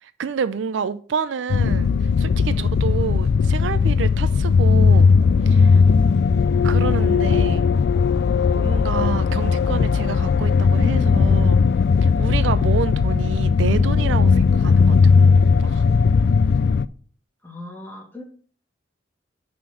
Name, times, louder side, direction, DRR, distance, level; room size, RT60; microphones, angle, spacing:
voice 1, 0.0-5.1 5.5-5.8 6.6-7.7 8.5-11.6 12.0-15.9, right 6 dB, 70° right, 0.4 m, -28 dB
sound 1, 1.5-16.9, left 5 dB, 60° left, 0.3 m, -17 dB
voice 2, 2.5-2.8 5.7-6.1 12.1-12.6 17.4-18.2, left 1 dB, 10° left, 1.7 m, -41 dB
6.1 x 3.7 x 5.9 m
head